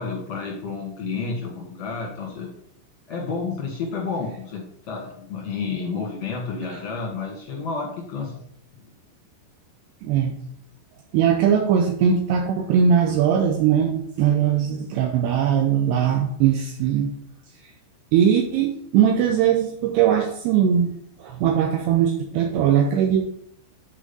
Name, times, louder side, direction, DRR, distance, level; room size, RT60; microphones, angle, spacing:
voice 1, 0.0-2.5 3.1-8.4, left 4 dB, 70° left, -3 dB, 1.5 m, -30 dB
voice 2, 10.0-10.4 11.1-17.1 18.1-20.9 21.2-23.2, right 8 dB, 90° right, 3 dB, 2.3 m, -20 dB
8.9 x 4.2 x 5.3 m, 0.70 s
omnidirectional pair, 5.5 m